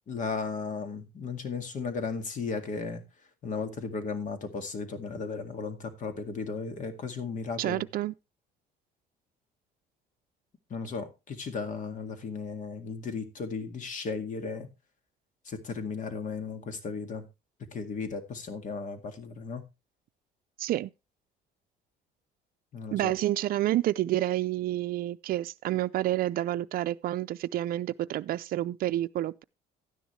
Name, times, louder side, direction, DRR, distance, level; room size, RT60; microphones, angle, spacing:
voice 1, 0.1-3.0 3.4-7.8 10.7-14.7 15.5-17.3 17.7-19.6 22.7-23.1, left 4 dB, 50° left, 2.1 m, -35 dB
voice 2, 7.6-8.1 20.6-20.9 22.9-29.4, right 14 dB, 60° right, 0.5 m, -29 dB
12.0 x 10.0 x 3.2 m
cardioid pair, 110°, 17 cm